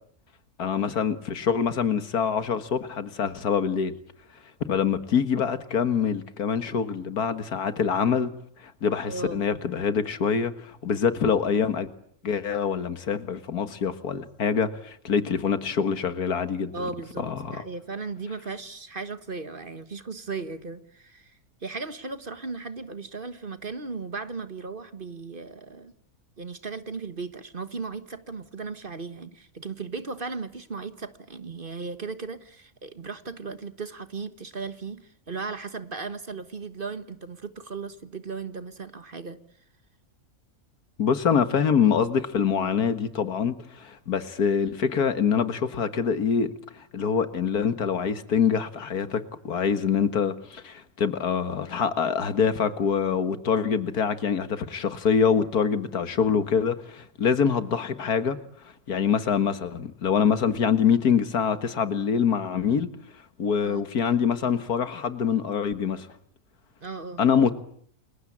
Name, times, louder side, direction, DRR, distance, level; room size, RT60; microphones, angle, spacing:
voice 1, 0.6-3.9 4.7-8.3 8.6-11.9 12.2-16.9 17.2-17.6 41.0-58.4 58.9-62.9 63.4-66.1 67.2-67.6, left 6 dB, 90° left, 2.2 m, -25 dB
voice 2, 9.1-9.4 16.7-25.9 26.4-39.4 63.6-63.9 66.8-67.2, right 4 dB, 35° right, 1.5 m, -36 dB
29.0 x 22.5 x 8.7 m
omnidirectional pair, 1.6 m